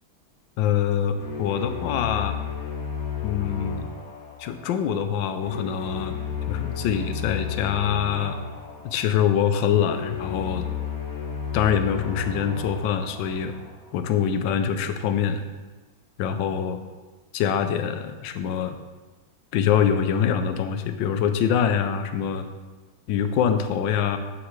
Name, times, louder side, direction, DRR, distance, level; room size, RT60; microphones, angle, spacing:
voice 1, 0.6-2.4 3.2-3.9 4.4-6.2 6.5-8.4 8.8-10.7 11.5-13.5 13.9-15.4 16.2-16.8 17.3-18.8 19.5-22.5 23.1-24.2, left 8 dB, 75° left, 8 dB, 1.3 m, -24 dB
sound 1, 1.2-14.2, left 7 dB, 50° left, 1.4 m, -33 dB
8.8 x 7.7 x 3.2 m, 1.2 s
omnidirectional pair, 2.2 m